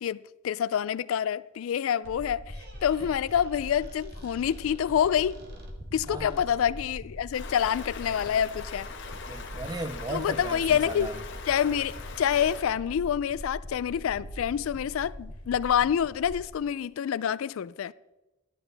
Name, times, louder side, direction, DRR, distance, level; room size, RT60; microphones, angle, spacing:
voice 1, 0.0-2.6 2.8-5.4 5.9-8.9 10.1-11.1 11.5-17.9, left 9 dB, 75° left, 0.3 m, -27 dB
sound 1, 2.0-16.5, equal, 70° right, 3.1 m, -42 dB
Squeak, 2.4-6.9, right 1 dB, 50° right, 1.6 m, -53 dB
voice 2, 6.1-6.4 9.3-11.2, right 2 dB, 20° right, 0.4 m, -36 dB
Stream, 7.3-12.6, left 4 dB, 55° left, 1.2 m, -42 dB
12.0 x 11.0 x 3.3 m
head